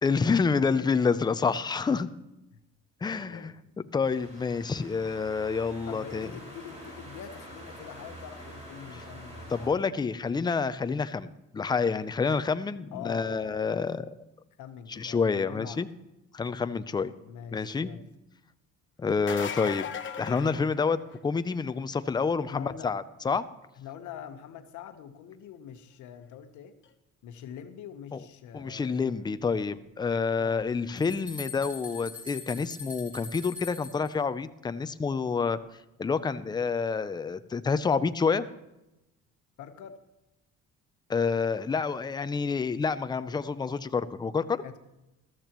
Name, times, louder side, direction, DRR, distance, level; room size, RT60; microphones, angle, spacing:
voice 1, 0.0-2.1 3.0-3.5 3.9-6.3 9.5-14.1 14.9-15.9 16.3-17.1 17.5-17.9 19.0-19.9 20.2-23.4 28.5-35.6 36.0-38.5 41.1-44.6, left 5 dB, 15° left, 12 dB, 0.4 m, -28 dB
voice 2, 3.2-3.5 5.9-9.9 12.9-13.6 14.6-15.8 17.2-18.1 22.5-22.9 23.7-26.8 27.2-29.2 30.4-30.7 39.6-40.0 44.6-44.8, left 8 dB, 80° left, 8 dB, 1.0 m, -44 dB
sound 1, 4.0-9.7, equal, 20° right, 3.9 m, -46 dB
sound 2, 19.1-21.3 26.9-27.0 28.8-28.9, left 7 dB, 40° left, 0.9 m, -37 dB
sound 3, 30.6-34.1, left 4 dB, 5° right, 3.3 m, -43 dB
14.0 x 13.5 x 3.0 m, 0.95 s
cardioid pair, 130°, 30 cm